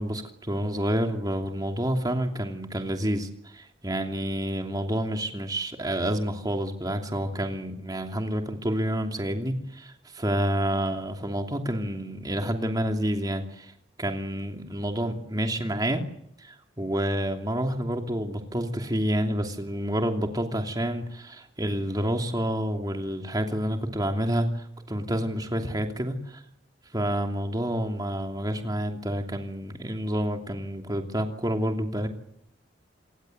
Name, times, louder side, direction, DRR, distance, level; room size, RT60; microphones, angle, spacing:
voice 1, 0.0-13.7 14.0-16.0 16.4-26.2 26.9-32.1, equal, 20° right, 4 dB, 2.9 m, -29 dB
27.0 x 21.5 x 7.9 m, 0.74 s
head